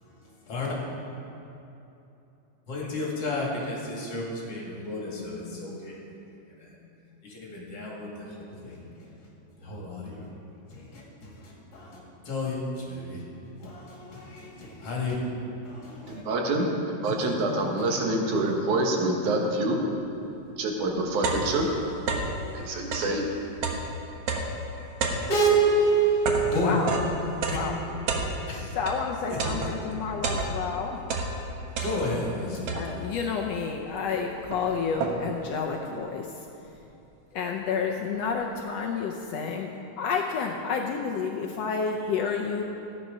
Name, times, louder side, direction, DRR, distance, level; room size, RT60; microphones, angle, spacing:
voice 1, 2.7-6.0 6.6-6.8 7.2-9.1 9.6-10.3 10.7-12.0 12.2-13.2 13.6-15.1 15.6-16.2 25.3-27.6 28.5-28.7 29.3-29.4 31.8-32.9, right 1 dB, 55° left, -4 dB, 3.4 m, -29 dB
voice 2, 16.1-19.8 20.6-21.7 22.5-23.3, right 2 dB, 85° right, 1 dB, 2.8 m, -26 dB
sound 1, 20.3-20.4 20.8-22.4 22.8-29.1 29.4-30.8 31.0-32.3 32.7-33.2 33.8-33.9 34.2-35.5, right 3 dB, 60° right, 2.0 m, -31 dB
voice 3, 26.5-26.9 27.5-27.8 28.7-31.0 32.5-36.3 37.3-42.6, left 5 dB, 70° left, 1 dB, 1.7 m, -30 dB
14.5 x 9.1 x 5.4 m, 2.9 s
omnidirectional pair, 3.4 m